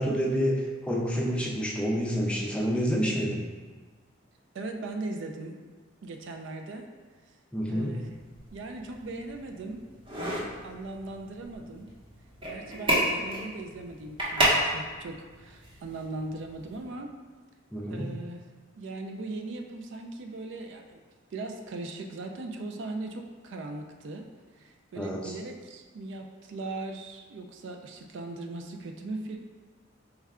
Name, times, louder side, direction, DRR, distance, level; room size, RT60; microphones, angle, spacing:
voice 1, 0.0-3.4 7.5-7.9 17.7-18.1 25.0-25.3, equal, 5° left, -3 dB, 0.4 m, -28 dB
voice 2, 4.5-5.6 6.0-6.9 7.3-7.4 7.7-8.1 8.5-9.8 10.6-11.9 12.4-17.1 17.9-18.4 18.8-21.0 21.3-24.3 24.5-29.4, right 2 dB, 65° right, 4 dB, 0.4 m, -39 dB
sound 1, 8.0-16.8, equal, 25° right, 0.8 m, -32 dB
4.5 x 2.1 x 3.5 m, 1.4 s
head